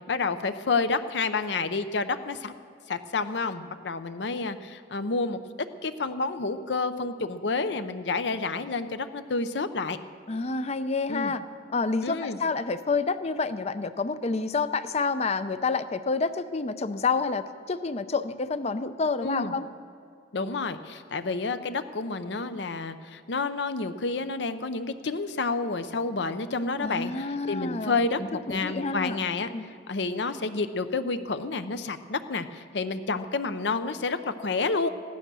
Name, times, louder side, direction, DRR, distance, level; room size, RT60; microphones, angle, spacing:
voice 1, 0.1-2.5 2.9-5.4 5.8-10.0 11.1-11.3 12.0-12.4 19.2-19.5 20.3-29.5 29.9-34.9, left 3 dB, 70° left, 11 dB, 0.7 m, -29 dB
voice 2, 10.3-11.4 11.7-19.7 26.8-29.2 29.5-29.6, left 4 dB, 35° left, 12 dB, 0.5 m, -28 dB
15.5 x 11.5 x 6.3 m, 2.2 s
head